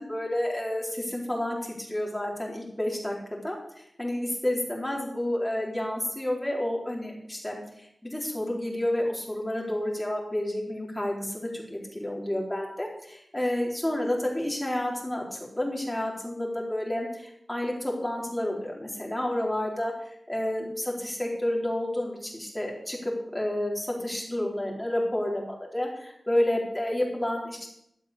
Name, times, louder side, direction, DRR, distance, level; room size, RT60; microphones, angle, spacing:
voice 1, 0.1-3.2 3.4-7.6 8.0-19.9 20.3-27.7, left 1 dB, 15° left, -1 dB, 4.4 m, -30 dB
12.5 x 8.3 x 8.2 m, 0.76 s
wide cardioid pair, 75°, 0 cm